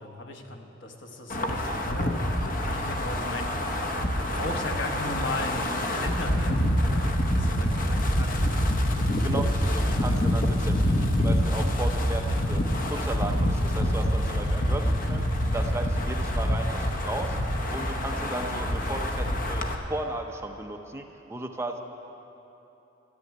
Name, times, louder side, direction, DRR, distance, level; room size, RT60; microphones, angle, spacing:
voice 1, 0.0-3.8 4.2-8.7, left 2 dB, 65° left, 3 dB, 1.2 m, -37 dB
Wind, 1.3-19.8, equal, 45° left, 1.0 m, -26 dB
voice 2, 9.2-12.6 12.9-15.2 15.5-17.4 17.7-19.6 19.9-21.8, right 2 dB, 15° right, 3 dB, 0.6 m, -35 dB
13.5 x 7.7 x 9.3 m, 3.0 s
head